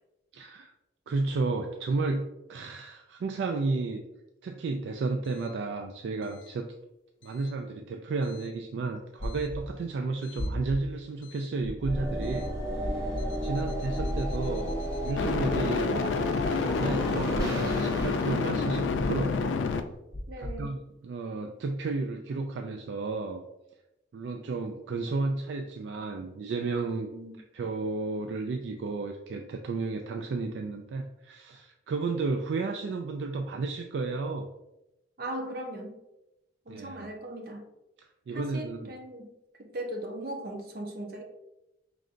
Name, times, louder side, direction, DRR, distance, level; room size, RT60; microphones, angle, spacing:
voice 1, 0.3-0.7 1.1-4.0 4.4-6.7 7.2-12.5 12.7-14.8 15.0-16.0 16.6-19.4 20.4-20.8 21.0-23.4 24.1-27.1 27.5-34.5 36.7-37.1 38.0-38.9, right 3 dB, 70° right, 4 dB, 0.3 m, -32 dB
sound 1, 9.2-9.6 10.4-10.8 11.6-12.0 12.8-13.2 14.0-14.4 15.2-15.6 16.4-16.8 17.7-18.1 19.0-19.4 20.1-20.5, left 1 dB, 20° left, 0.6 m, -35 dB
sound 2, 10.3-10.5 15.2-19.8, left 4 dB, 85° left, 0.4 m, -28 dB
sound 3, 11.8-19.9, right 1 dB, 20° right, 0.8 m, -34 dB
voice 2, 20.3-20.7 27.1-27.4 35.2-36.0 36.7-37.7 38.3-39.3 39.6-41.2, right 1 dB, 55° right, 2 dB, 0.7 m, -38 dB
5.0 x 3.2 x 2.5 m, 0.92 s
head